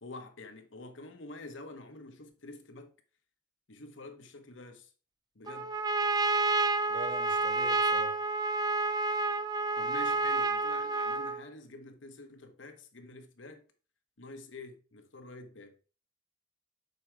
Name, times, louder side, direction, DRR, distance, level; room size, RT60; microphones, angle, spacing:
voice 1, 0.0-2.9 3.7-4.9 5.3-5.7 9.8-13.6 14.2-15.8, left 2 dB, 70° left, 1.1 m, -47 dB
Trumpet, 5.5-11.4, right 3 dB, 20° right, 0.4 m, -29 dB
voice 2, 6.9-8.2, right 2 dB, 45° right, 1.3 m, -43 dB
6.9 x 4.6 x 4.6 m
head